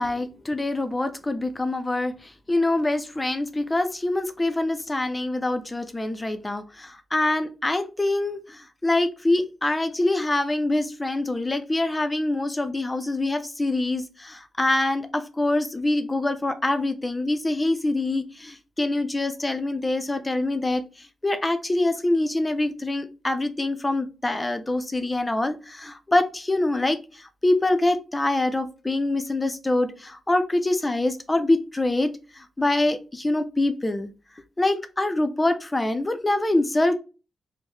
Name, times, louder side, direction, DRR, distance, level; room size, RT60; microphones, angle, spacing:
voice 1, 0.0-2.1 2.5-20.8 21.2-27.0 27.4-34.1 34.6-37.0, left 2 dB, 15° left, 9 dB, 0.4 m, -25 dB
4.5 x 2.1 x 3.2 m, 0.33 s
wide cardioid pair, 135°, 0 cm